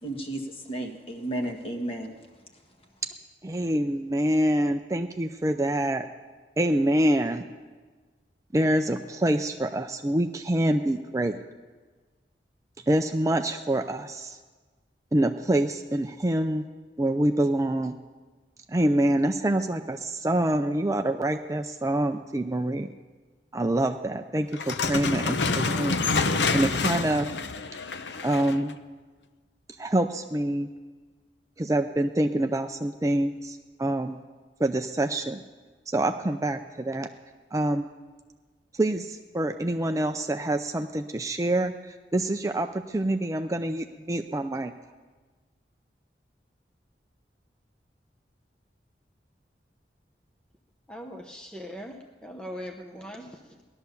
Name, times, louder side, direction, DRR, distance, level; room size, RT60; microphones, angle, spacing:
voice 1, 0.0-2.1, right 1 dB, 35° left, 2 dB, 1.7 m, -33 dB
voice 2, 3.4-6.1 6.6-7.5 8.5-11.4 12.9-14.4 15.1-16.6 17.0-17.9 18.7-22.9 23.5-27.3 28.2-28.7 29.8-30.7 31.6-34.2 34.6-35.4 35.9-37.1 37.5-37.9 38.7-44.7, right 1 dB, 20° right, 6 dB, 0.4 m, -26 dB
sound 1, 24.5-28.7, left 4 dB, 85° left, 0.8 m, -27 dB
voice 3, 50.9-53.6, equal, 5° left, 3 dB, 0.8 m, -40 dB
18.0 x 11.5 x 6.9 m, 1.4 s
head